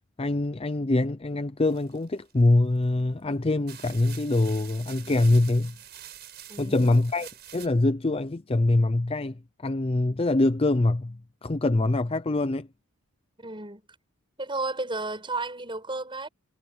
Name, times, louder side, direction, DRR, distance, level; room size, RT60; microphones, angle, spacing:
voice 1, 0.2-5.8 6.6-12.7, left 2 dB, 25° left, 0.5 m, -24 dB
sound 1, 1.6-2.5 3.2-3.3 3.7-7.7, right 11 dB, 50° right, 5.7 m, -46 dB
voice 2, 6.5-6.9 13.4-13.8 14.4-16.3, right 3 dB, 20° right, 7.8 m, -33 dB
head